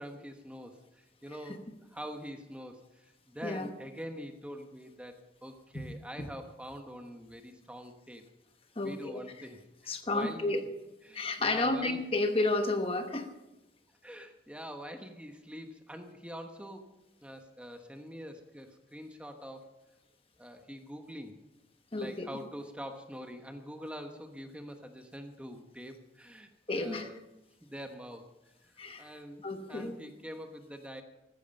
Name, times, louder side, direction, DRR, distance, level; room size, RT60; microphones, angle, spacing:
voice 1, 0.0-8.3 8.8-10.5 11.0-12.0 14.0-19.8 20.4-21.4 21.9-27.2 27.6-28.3 28.6-29.4 29.7-31.0, equal, 5° right, 5 dB, 1.1 m, -45 dB
voice 2, 8.8-9.2 9.9-10.6 11.1-13.3 21.9-22.3 26.7-27.1 28.8-29.1 29.4-30.0, left 2 dB, 30° left, 6 dB, 1.1 m, -31 dB
14.5 x 14.5 x 5.3 m, 0.99 s
head